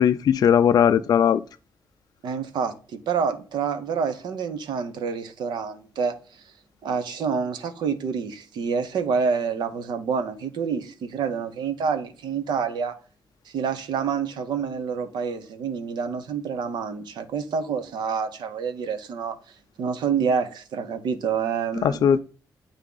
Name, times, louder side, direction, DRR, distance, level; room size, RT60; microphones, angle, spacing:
voice 1, 0.0-1.4 21.8-22.2, left 8 dB, 60° left, 0.3 m, -18 dB
voice 2, 2.2-6.1 6.8-12.9 13.5-19.4 19.8-22.0, right 6 dB, 85° right, 0.9 m, -27 dB
8.2 x 3.6 x 3.8 m
cardioid pair, 100°, 7 cm